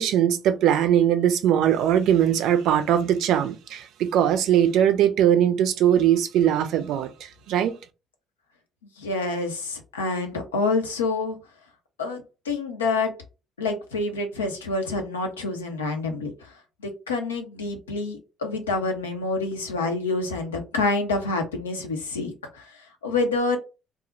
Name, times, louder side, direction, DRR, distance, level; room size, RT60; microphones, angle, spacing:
voice 1, 0.0-7.1 7.5-7.8, right 10 dB, 65° right, 0.4 m, -20 dB
voice 2, 9.0-11.4 12.0-13.1 13.6-16.5 16.8-23.6, left 3 dB, 90° left, 0.5 m, -27 dB
2.4 x 2.0 x 3.7 m
hypercardioid pair, 50°, 0 cm